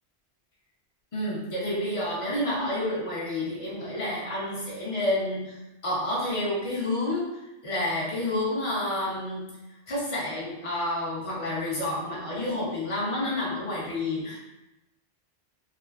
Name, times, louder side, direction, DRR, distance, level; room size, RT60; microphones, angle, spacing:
voice 1, 1.1-9.6 9.9-14.4, left 1 dB, 35° left, -6 dB, 0.7 m, -29 dB
3.3 x 2.0 x 2.3 m, 0.96 s
omnidirectional pair, 1.2 m